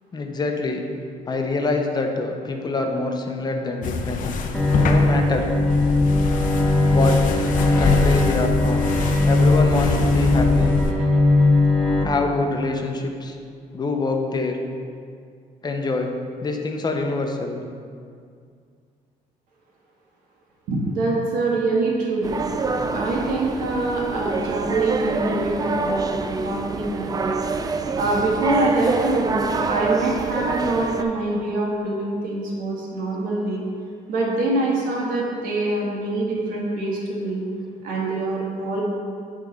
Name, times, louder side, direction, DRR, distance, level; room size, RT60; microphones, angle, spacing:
voice 1, 0.1-0.9 1.3-4.2 4.8-5.5 6.9-7.5 7.8-8.9 9.2-10.8 12.0-13.4 13.7-14.6 15.6-16.1 16.4-17.6, left 3 dB, 30° left, 3 dB, 0.8 m, -25 dB
sound 1, 3.8-10.9, left 4 dB, 70° left, 0.7 m, -25 dB
Bowed string instrument, 4.5-12.0, left 2 dB, 5° left, 1.0 m, -19 dB
voice 2, 20.7-22.4 22.9-26.1 26.4-27.3 28.0-33.6 34.1-37.4 37.8-38.8, right 2 dB, 80° right, -3 dB, 1.8 m, -24 dB
sound 2, 22.2-31.0, right 4 dB, 25° right, 0.4 m, -26 dB
9.1 x 3.7 x 5.3 m, 2.2 s
cardioid pair, 110°, 14 cm